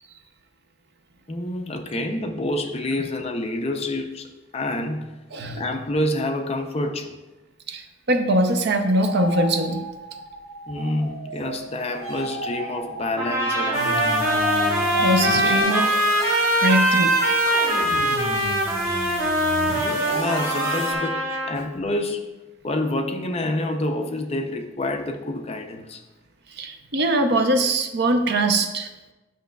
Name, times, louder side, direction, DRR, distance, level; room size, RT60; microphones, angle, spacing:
voice 1, 1.3-5.1 5.5-7.2 10.7-14.1 20.1-22.3 22.6-26.0, left 1 dB, 30° left, 4 dB, 0.4 m, -28 dB
voice 2, 5.3-5.6 7.7-9.8 15.0-16.0 16.6-17.2 17.8-17.9 26.5-28.9, right 1 dB, 50° right, 6 dB, 0.6 m, -22 dB
sound 1, 9.0-15.6, left 2 dB, 85° right, 2.5 m, -32 dB
sound 2, 13.1-21.5, right 1 dB, 15° right, 1.9 m, -22 dB
sound 3, 13.7-20.9, right 1 dB, 65° right, 1.5 m, -32 dB
10.0 x 6.1 x 2.3 m, 1.1 s
head